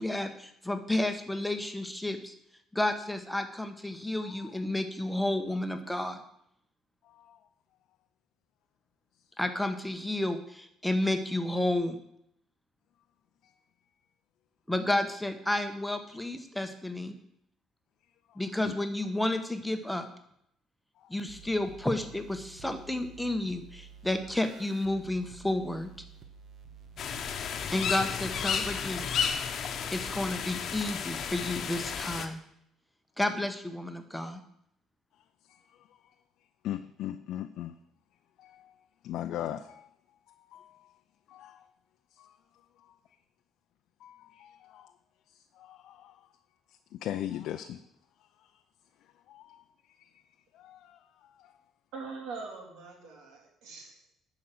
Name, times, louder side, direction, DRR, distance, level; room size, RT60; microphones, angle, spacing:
voice 1, 0.0-2.3 2.7-6.2 9.4-12.0 14.7-17.1 18.4-20.1 21.1-25.9 27.7-29.1 29.9-32.4 33.2-34.4, left 1 dB, 5° left, 7 dB, 1.1 m, -31 dB
voice 2, 7.1-7.4 18.6-18.7 36.6-37.7 38.4-38.7 39.0-39.9 40.5-40.8 41.3-41.6 42.2-42.3 44.0-44.9 45.6-46.2 46.9-47.8 49.3-49.6 50.6-51.0, left 12 dB, 70° left, 7 dB, 0.5 m, -39 dB
sound 1, 21.3-28.5, right 6 dB, 50° right, 1.3 m, -51 dB
sound 2, 27.0-32.3, left 7 dB, 50° left, 1.0 m, -33 dB
voice 3, 51.9-54.1, right 4 dB, 80° right, 0 dB, 3.1 m, -43 dB
11.0 x 5.0 x 7.6 m, 0.75 s
cardioid pair, 125°, 0 cm